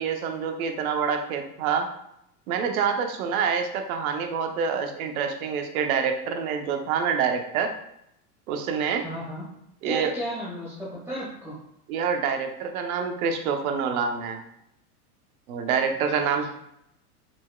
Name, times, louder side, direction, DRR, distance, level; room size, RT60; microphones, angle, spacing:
voice 1, 0.0-1.9 2.5-7.7 8.5-9.0 9.8-10.1 11.9-14.4 15.5-16.4, right 6 dB, 65° right, 5 dB, 0.8 m, -26 dB
voice 2, 9.0-9.4 9.8-11.5 16.1-16.4, equal, 5° right, -8 dB, 1.0 m, -34 dB
4.4 x 4.3 x 2.3 m, 0.77 s
hypercardioid pair, 110°, 46 cm